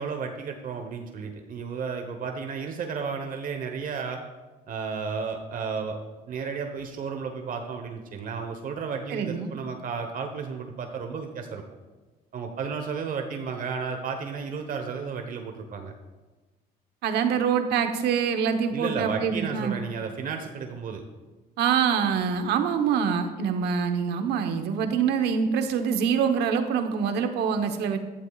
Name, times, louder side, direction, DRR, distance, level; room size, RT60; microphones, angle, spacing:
voice 1, 0.0-4.2 4.7-6.0 6.3-11.6 12.3-15.9 18.7-21.0, right 5 dB, 55° right, 4 dB, 1.1 m, -33 dB
voice 2, 9.1-9.5 17.0-19.7 21.6-28.0, right 7 dB, 80° right, 7 dB, 1.1 m, -25 dB
15.0 x 12.0 x 2.4 m, 1.2 s
cardioid pair, 110°, 17 cm